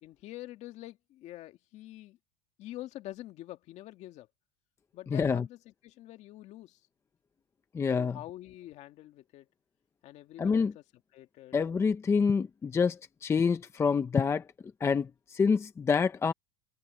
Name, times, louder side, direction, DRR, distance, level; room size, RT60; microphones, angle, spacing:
voice 1, 0.0-2.2 2.6-4.3 4.9-6.8 8.0-9.5 10.0-10.8 11.1-11.6, left 15 dB, 45° left, 2.0 m, -46 dB
voice 2, 5.1-5.5 7.7-8.2 10.4-10.7 11.5-14.4 14.8-16.3, left 5 dB, 15° left, 0.8 m, -27 dB
supercardioid pair, 145°, 16 cm